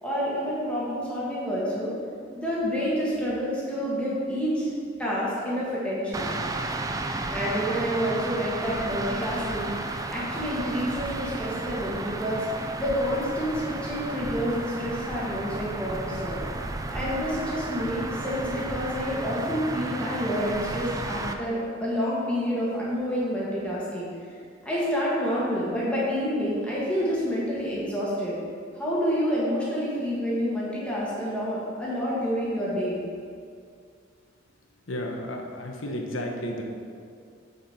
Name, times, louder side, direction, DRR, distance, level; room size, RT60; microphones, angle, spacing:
voice 1, 0.0-2.0 2.3-4.7 5.0-6.3 7.3-12.4 12.8-16.4 16.9-24.1 24.6-28.4 28.7-33.0, equal, 5° left, -8 dB, 1.5 m, -28 dB
sound 1, 6.1-21.3, right 2 dB, 15° right, 0.4 m, -33 dB
voice 2, 34.9-36.6, left 1 dB, 80° left, 1 dB, 1.1 m, -32 dB
7.3 x 6.6 x 4.3 m, 2.3 s
head